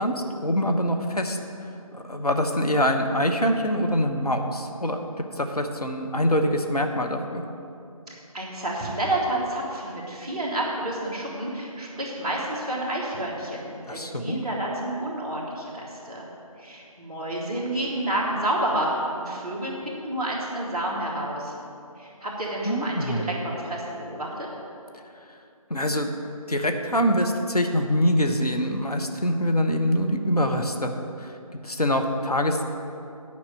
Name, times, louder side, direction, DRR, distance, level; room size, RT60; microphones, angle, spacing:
voice 1, 0.0-1.4 1.9-5.0 5.4-7.4 13.9-14.4 22.6-23.3 25.7-26.1 26.5-30.9 31.2-31.4 31.6-32.6, equal, 90° left, 4 dB, 1.1 m, -24 dB
voice 2, 8.1-16.3 16.6-21.5 22.0-24.5, right 1 dB, 10° right, -9 dB, 1.2 m, -29 dB
9.4 x 5.8 x 7.7 m, 2.7 s
figure-of-eight pair, 160°, 19 cm